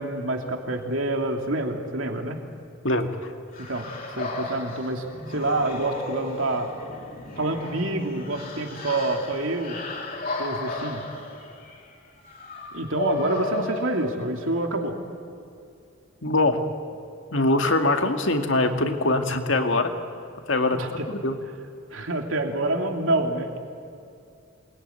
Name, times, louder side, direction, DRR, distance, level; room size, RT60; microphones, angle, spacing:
voice 1, 0.0-2.4 3.6-3.9 4.2-6.7 7.4-9.8 10.4-11.0 12.7-15.0 20.8-21.1 21.9-23.5, right 2 dB, 75° right, 3 dB, 3.0 m, -27 dB
sound 1, 3.5-14.6, left 2 dB, 45° left, 3.4 m, -34 dB
voice 2, 16.2-16.6 17.3-19.9 20.5-20.8 21.1-21.4, left 2 dB, 65° left, 5 dB, 2.2 m, -22 dB
28.0 x 21.5 x 9.5 m, 2.5 s
head